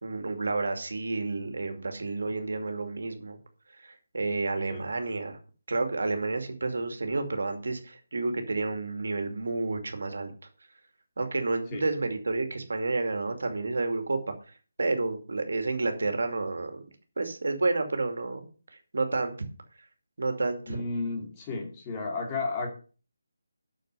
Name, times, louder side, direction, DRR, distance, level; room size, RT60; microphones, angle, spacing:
voice 1, 0.0-3.4 3.8-5.4 5.7-10.3 11.2-14.3 14.8-16.8 17.2-18.4 18.9-19.3 20.2-20.8, right 3 dB, 70° right, 6 dB, 2.5 m, -30 dB
voice 2, 20.7-22.7, left 3 dB, 20° left, 0 dB, 2.8 m, -33 dB
9.2 x 6.7 x 6.8 m, 0.38 s
figure-of-eight pair, 160°, 0 cm